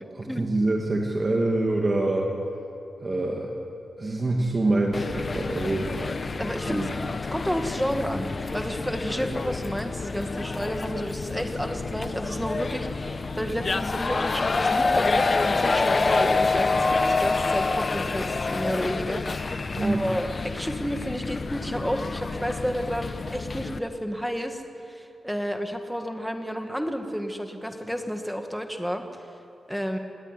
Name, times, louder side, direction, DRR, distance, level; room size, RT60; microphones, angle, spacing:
voice 1, 0.1-2.3 3.0-3.5 4.0-5.9 6.6-6.9 19.8-20.0, right 2 dB, 25° right, 0 dB, 2.3 m, -25 dB
sound 1, 4.9-23.8, left 3 dB, 30° left, 0.9 m, -27 dB
voice 2, 6.4-6.9 7.3-24.6 24.9-29.0 29.7-30.0, equal, ahead, 5 dB, 1.8 m, -31 dB
28.0 x 18.5 x 10.0 m, 2.7 s
wide cardioid pair, 180°, 0 cm